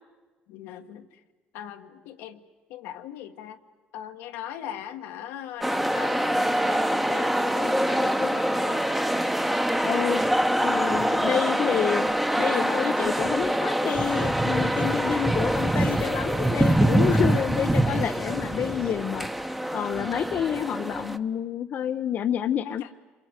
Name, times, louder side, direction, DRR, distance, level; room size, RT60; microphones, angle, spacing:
voice 1, 0.5-1.2 1.5-2.4 2.7-3.6 3.9-8.8 17.0-17.5 22.6-22.9, left 10 dB, 90° left, 6 dB, 1.5 m, -40 dB
sound 1, 5.6-21.2, right 1 dB, 5° right, 1.1 m, -24 dB
voice 2, 9.8-10.2 10.6-12.1 12.4-19.3 19.7-22.9, left 9 dB, 55° left, 9 dB, 0.7 m, -28 dB
27.0 x 23.5 x 8.1 m, 1.2 s
cardioid pair, 100°, 4 cm